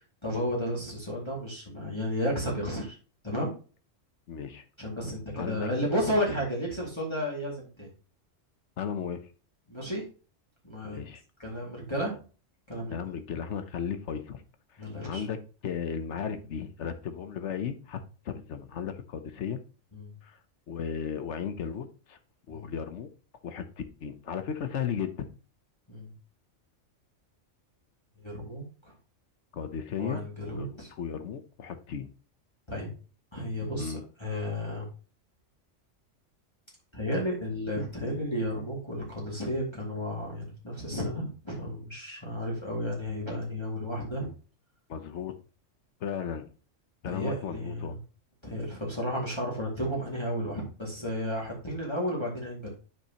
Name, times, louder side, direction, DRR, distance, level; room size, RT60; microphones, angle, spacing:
voice 1, 0.2-3.0 3.2-3.5 4.8-7.9 9.7-10.0 10.6-11.0 11.4-12.1 12.7-13.0 14.8-15.3 19.9-20.1 22.5-22.7 25.9-26.1 28.2-28.6 30.0-30.9 32.7-32.9 33.3-34.9 36.9-44.3 47.1-48.0 48.4-52.7, equal, 20° left, -4 dB, 2.2 m, -32 dB
voice 2, 4.3-4.6 5.3-5.7 8.8-9.2 10.8-11.2 12.9-14.4 14.7-18.0 18.2-19.6 20.2-20.4 20.7-22.2 22.5-23.1 23.4-25.3 29.5-32.1 33.8-34.0 44.9-45.4 46.0-46.5 47.0-48.0, left 7 dB, 70° left, 9 dB, 1.1 m, -35 dB
9.6 x 5.6 x 2.9 m, 0.36 s
omnidirectional pair, 1.3 m